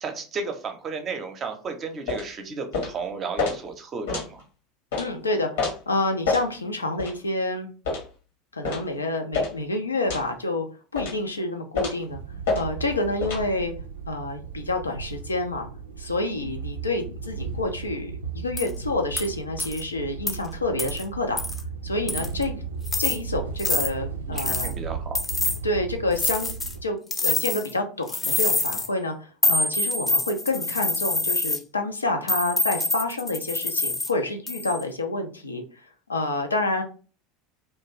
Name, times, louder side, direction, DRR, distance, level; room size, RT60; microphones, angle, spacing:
voice 1, 0.0-4.4 24.3-25.2, right 4 dB, 35° right, 5 dB, 0.6 m, -33 dB
sound 1, 2.1-2.3 2.7-3.0 3.4-3.6 4.1-4.3 4.9-5.1 5.6-5.7 6.3-6.5 7.0-7.1 7.8-8.1 8.6-8.9 9.3-9.5 10.1-10.3 11.0-11.2 11.7-12.0 12.4-12.6 13.2-13.4, left 4 dB, 65° left, 0.9 m, -27 dB
voice 2, 4.9-7.7 8.5-10.6 10.9-12.2 12.5-13.7 14.1-15.7 16.0-21.4 21.8-22.6 23.0-24.7 25.6-26.5 26.8-36.8, left 2 dB, 80° left, 4 dB, 0.4 m, -28 dB
sound 2, 12.1-26.8, right 6 dB, 80° right, 0.3 m, -35 dB
sound 3, 18.6-18.7 19.2-19.3 19.6-19.8 20.3-20.4 20.8-21.0 21.4-21.6 22.1-22.4 22.9-23.2 23.6-23.9 24.4-24.7 25.2-25.6 26.2-26.7 27.1-27.7 28.1-28.9 29.4-31.6 32.3-34.1 34.5-34.8, left 2 dB, 20° left, 0.5 m, -26 dB
2.4 x 2.2 x 3.1 m, 0.37 s
figure-of-eight pair, 75°, 0 cm